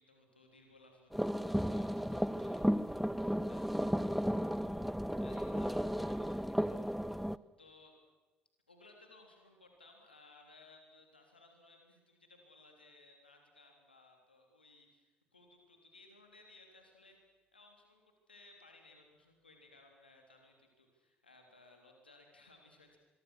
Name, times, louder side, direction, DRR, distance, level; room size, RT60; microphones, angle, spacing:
voice 1, 0.0-7.3 7.6-7.9 8.7-23.0, left 2 dB, 85° left, 2 dB, 3.5 m, -61 dB
sound 1, 1.1-7.4, equal, ahead, 0.6 m, -34 dB
25.5 x 23.0 x 6.3 m, 1.2 s
figure-of-eight pair, 50°, 5 cm